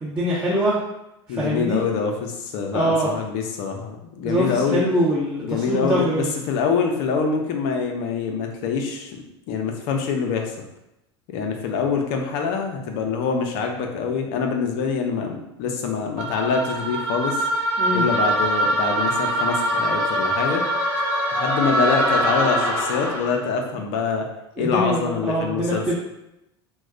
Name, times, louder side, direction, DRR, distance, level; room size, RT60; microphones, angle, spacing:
voice 1, 0.0-0.8 1.4-1.8 2.7-3.1 4.2-6.3 17.8-18.1 24.6-26.0, equal, 15° right, -8 dB, 0.9 m, -23 dB
voice 2, 1.3-4.8 5.4-9.2 9.5-10.5 11.3-17.5 17.9-20.6 21.3-24.3 24.6-26.0, left 5 dB, 55° left, 2 dB, 0.6 m, -25 dB
sound 1, 16.2-23.4, right 1 dB, 65° right, 1.1 m, -23 dB
2.3 x 2.1 x 3.7 m, 0.89 s
hypercardioid pair, 85°, 14 cm